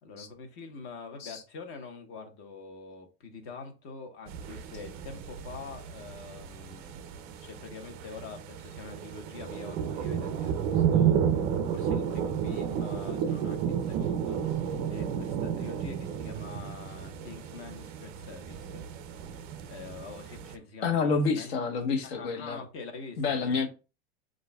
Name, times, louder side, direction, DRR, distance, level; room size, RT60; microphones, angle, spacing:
voice 1, 0.0-18.9 19.2-19.4 19.7-21.5 22.2-23.7, left 4 dB, 40° left, 1.2 m, -45 dB
sound 1, 4.3-20.5, right 8 dB, 30° right, 0.4 m, -32 dB
voice 2, 20.8-22.6 23.2-23.7, left 4 dB, 65° left, 1.2 m, -28 dB
7.7 x 2.6 x 2.3 m
supercardioid pair, 145°, 33 cm